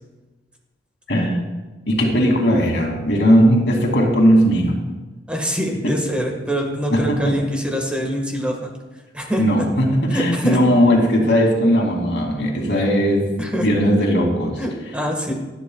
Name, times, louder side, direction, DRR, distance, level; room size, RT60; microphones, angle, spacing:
voice 1, 1.1-1.4 1.9-4.7 5.8-5.9 6.9-7.4 9.4-13.2 13.6-14.6, equal, 75° left, 0 dB, 2.7 m, -17 dB
voice 2, 5.3-8.7 9.1-9.7 10.1-10.6 13.4-13.7 14.6-15.3, equal, 5° right, 1 dB, 1.6 m, -24 dB
18.5 x 12.0 x 2.4 m, 1.2 s
head